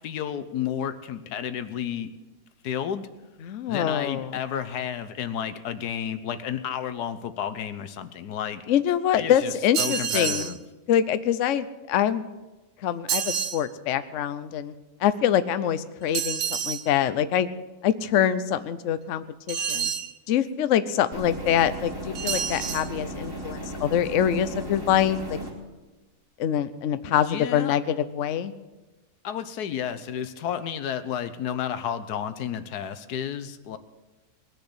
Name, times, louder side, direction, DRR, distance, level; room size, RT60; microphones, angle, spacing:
voice 1, 0.0-2.1 2.6-3.1 3.7-8.6 9.2-10.6 27.2-27.7 29.2-33.8, left 9 dB, 90° left, 12 dB, 1.4 m, -31 dB
voice 2, 3.4-4.4 8.7-10.6 10.9-12.2 12.8-14.7 15.0-17.5 17.8-19.9 20.3-25.4 26.4-28.5, left 10 dB, 60° left, 12 dB, 0.9 m, -25 dB
sound 1, 9.7-10.6 13.1-13.6 16.1-16.9 19.5-20.1 22.2-22.9, right 8 dB, 65° right, 1.2 m, -28 dB
sound 2, 21.1-25.5, right 1 dB, 15° right, 2.8 m, -36 dB
20.0 x 6.8 x 7.9 m, 1.1 s
omnidirectional pair, 1.6 m